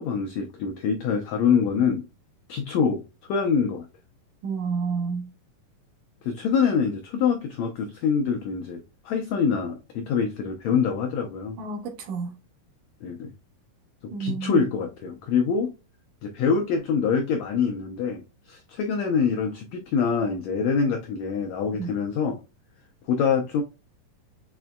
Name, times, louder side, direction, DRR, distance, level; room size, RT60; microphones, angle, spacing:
voice 1, 0.0-2.0 2.5-3.0 3.3-3.9 6.2-11.6 13.0-13.3 14.0-15.7 16.2-18.2 18.5-22.4 23.1-23.6, left 6 dB, 85° left, 1.5 m, -25 dB
voice 2, 4.4-5.3 11.6-12.4 14.1-14.6 21.8-21.9, right 5 dB, 70° right, 2.5 m, -30 dB
6.9 x 3.5 x 2.2 m
omnidirectional pair, 3.9 m